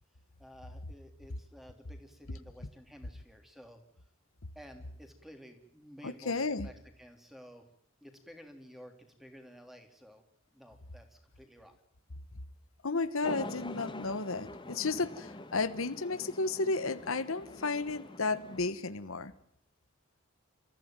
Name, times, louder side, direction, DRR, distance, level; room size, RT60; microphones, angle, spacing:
voice 1, 0.4-3.8 4.5-7.6 8.0-10.2 10.5-11.8, equal, ahead, 5 dB, 3.2 m, -53 dB
voice 2, 6.0-6.7 12.8-19.3, left 3 dB, 85° left, 13 dB, 1.3 m, -33 dB
sound 1, 13.2-18.7, left 2 dB, 25° left, 1.8 m, -45 dB
29.0 x 15.0 x 9.0 m, 0.70 s
head